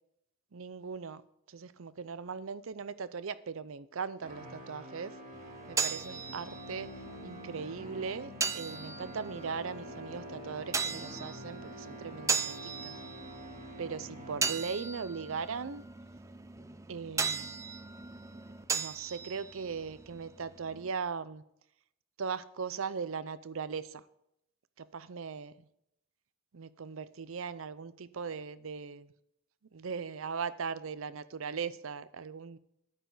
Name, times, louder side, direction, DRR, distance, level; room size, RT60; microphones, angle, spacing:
voice 1, 0.5-1.2 1.5-5.1 5.8-6.9 7.2-8.3 8.5-12.9 13.8-15.8 16.9-17.6 18.7-21.4 22.2-24.0 24.8-25.5 26.5-29.1 29.7-32.6, right 5 dB, 75° right, 16 dB, 0.6 m, -39 dB
sound 1, 4.2-15.0, equal, 35° right, 2.9 m, -47 dB
sound 2, 5.3-20.9, right 5 dB, 15° right, 0.4 m, -38 dB
10.5 x 9.0 x 4.0 m, 0.77 s
head